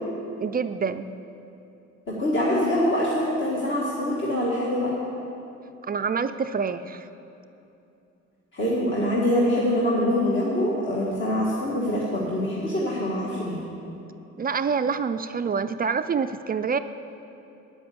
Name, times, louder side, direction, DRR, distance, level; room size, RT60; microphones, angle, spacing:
voice 1, 0.4-1.1 5.9-7.1 14.4-16.8, right 5 dB, 30° right, 10 dB, 0.4 m, -26 dB
voice 2, 2.1-4.9 8.5-13.6, left 1 dB, 40° left, -5 dB, 1.9 m, -24 dB
8.8 x 7.7 x 8.5 m, 2.8 s
cardioid pair, 90°, 30 cm